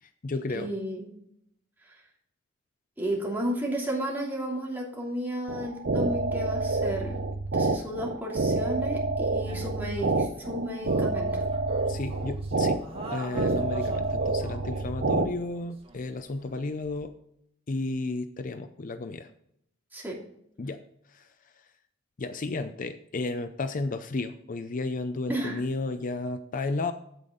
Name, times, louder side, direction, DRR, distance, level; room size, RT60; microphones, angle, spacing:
voice 1, 0.0-0.7 11.9-12.8 13.1-17.1 17.7-19.3 20.6-20.8 21.1-21.7 22.2-26.9, left 3 dB, 45° left, 10 dB, 0.5 m, -33 dB
voice 2, 0.5-1.0 1.9-2.0 3.0-7.2 7.5-11.4 19.9-20.2 25.3-25.6, right 1 dB, 10° right, -3 dB, 2.9 m, -33 dB
sound 1, 5.5-15.3, right 3 dB, 60° right, 0.7 m, -28 dB
sound 2, 9.4-17.0, right 2 dB, 30° right, 1.7 m, -46 dB
8.8 x 8.4 x 3.8 m, 0.73 s
head